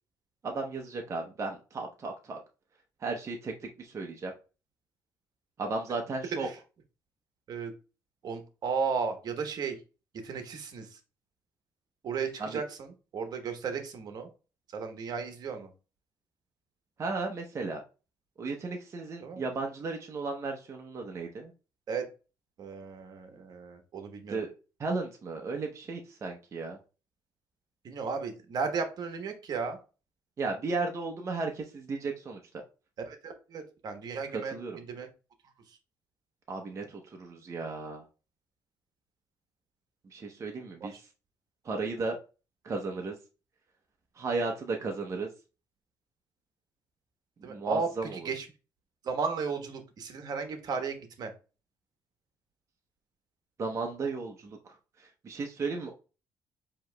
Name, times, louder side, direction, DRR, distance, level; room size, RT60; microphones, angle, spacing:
voice 1, 0.4-2.4 3.0-3.5 3.8-4.3 5.6-6.5 12.4-12.6 17.0-17.8 18.4-21.5 24.3-24.5 24.8-26.8 30.4-32.4 34.3-34.8 36.5-38.0 40.1-40.9 41.6-42.2 42.6-43.2 44.2-45.3 47.4-48.2 53.6-56.0, right 3 dB, 40° right, 2 dB, 0.8 m, -35 dB
voice 2, 8.2-9.8 10.2-11.0 12.0-14.3 14.7-15.7 19.2-19.4 21.9-22.1 22.6-24.4 27.8-29.8 33.0-35.1 35.7-35.8 40.8-41.0 47.4-48.5 49.0-51.3, right 5 dB, 60° right, 6 dB, 1.0 m, -35 dB
7.6 x 2.9 x 2.2 m, 0.33 s
cardioid pair, 90°, 8 cm